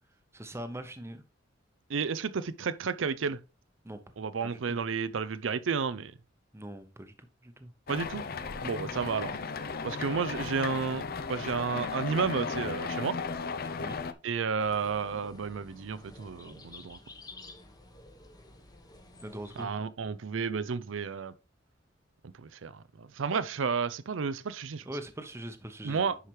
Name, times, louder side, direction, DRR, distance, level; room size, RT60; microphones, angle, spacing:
voice 1, 0.3-1.2 3.8-4.2 4.4-4.8 6.5-7.7 13.7-14.0 19.2-19.7 24.8-26.2, right 1 dB, 15° right, 0.9 m, -42 dB
voice 2, 1.9-3.4 4.2-6.1 7.9-8.2 8.6-9.4 9.8-13.2 14.2-17.0 19.6-21.3 22.4-24.8 25.8-26.2, right 5 dB, 80° right, 0.5 m, -32 dB
sound 1, 7.9-14.1, left 4 dB, 50° left, 0.6 m, -35 dB
sound 2, 14.6-19.6, left 2 dB, 20° left, 1.0 m, -51 dB
10.0 x 5.0 x 3.1 m
head